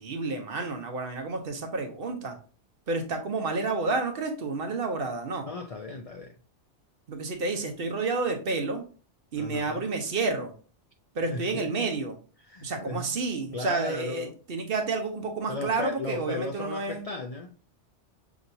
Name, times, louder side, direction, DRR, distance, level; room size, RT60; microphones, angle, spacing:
voice 1, 0.0-2.4 2.9-5.5 7.1-8.8 9.3-10.5 11.1-12.2 12.6-17.0, right 3 dB, 55° right, 0.9 m, -30 dB
voice 2, 5.4-6.4 9.4-9.8 11.2-11.9 12.4-13.1 13.5-14.3 15.5-17.5, left 3 dB, 55° left, 0.4 m, -36 dB
6.0 x 2.8 x 2.6 m
omnidirectional pair, 1.2 m